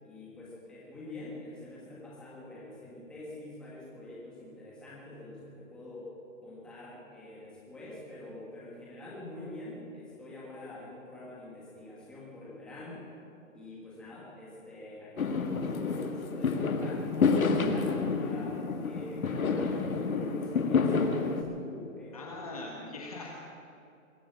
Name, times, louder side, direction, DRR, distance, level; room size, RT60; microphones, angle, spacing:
voice 1, 0.0-6.1 6.4-13.1 13.5-23.1, left 1 dB, ahead, -6 dB, 1.5 m, -45 dB
Fireworks, 15.2-21.4, left 4 dB, 80° left, 1.8 m, -29 dB
voice 2, 22.1-23.3, left 2 dB, 25° left, 0 dB, 1.2 m, -41 dB
22.0 x 7.7 x 8.4 m, 2.6 s
hypercardioid pair, 175°, 41 cm